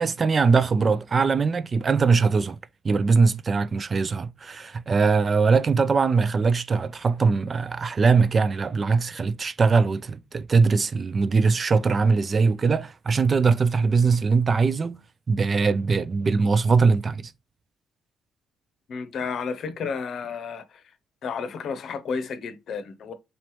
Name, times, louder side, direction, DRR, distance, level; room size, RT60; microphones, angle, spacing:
voice 1, 0.0-2.6 2.8-15.0 15.3-17.3, right 4 dB, 40° right, 0.3 m, -21 dB
voice 2, 18.9-20.8 21.2-23.1, left 5 dB, 65° left, 0.7 m, -32 dB
4.1 x 2.9 x 3.1 m
cardioid pair, 90°, 0 cm